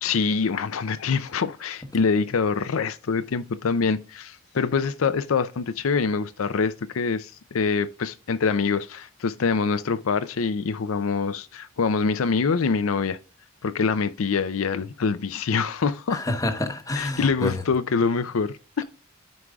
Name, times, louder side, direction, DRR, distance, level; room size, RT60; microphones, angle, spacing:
voice 1, 0.0-13.2 13.6-16.2 17.0-18.8, left 5 dB, 85° left, 0.5 m, -25 dB
voice 2, 16.1-17.6, left 2 dB, 15° left, 0.9 m, -28 dB
13.5 x 4.8 x 2.3 m
head